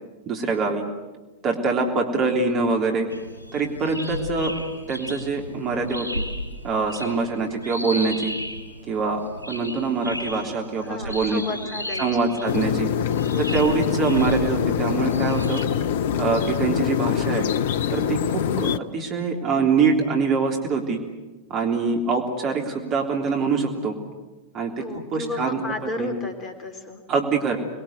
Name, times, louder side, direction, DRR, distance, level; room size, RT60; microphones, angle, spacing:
voice 1, 0.3-0.8 1.4-3.1 3.5-4.5 4.9-6.2 6.6-8.3 8.9-9.2 9.5-11.4 12.0-12.9 13.4-15.6 16.2-17.5 17.9-21.0 21.5-23.9 24.5-24.8 25.1-25.6 26.0-26.1 27.1-27.6, right 4 dB, 35° right, 2 dB, 3.5 m, -24 dB
sound 1, 3.1-15.6, left 1 dB, 80° left, 4.2 m, -35 dB
voice 2, 10.8-12.6 14.1-14.3 24.8-27.0, left 2 dB, 25° left, 6 dB, 3.6 m, -33 dB
sound 2, 12.5-18.8, left 9 dB, 55° left, 0.7 m, -24 dB
26.5 x 21.5 x 8.2 m, 1.2 s
figure-of-eight pair, 90°, 0 cm